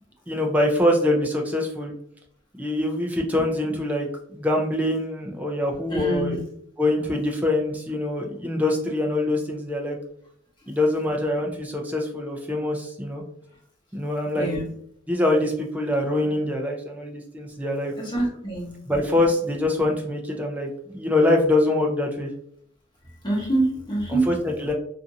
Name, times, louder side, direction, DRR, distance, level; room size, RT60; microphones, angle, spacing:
voice 1, 0.3-1.9 2.6-4.1 4.3-6.4 6.8-10.0 10.7-13.2 13.9-14.5 15.1-17.9 18.9-22.3 24.1-24.7, left 1 dB, 10° right, 1 dB, 0.4 m, -24 dB
voice 2, 5.9-6.4 14.3-14.7 18.0-18.7 23.2-24.3, right 2 dB, 25° left, -5 dB, 1.0 m, -25 dB
2.5 x 2.5 x 2.6 m, 0.68 s
head